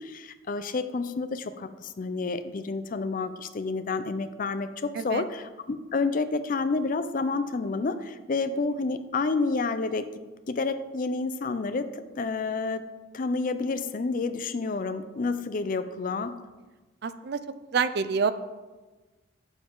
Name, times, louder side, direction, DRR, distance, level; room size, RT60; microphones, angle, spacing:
voice 1, 0.0-10.1 10.5-12.9 13.1-16.4, left 3 dB, 40° left, 11 dB, 0.4 m, -29 dB
voice 2, 4.9-5.2 17.0-17.4 17.7-18.3, right 5 dB, 50° right, 12 dB, 0.4 m, -27 dB
8.9 x 7.1 x 3.8 m, 1.2 s
head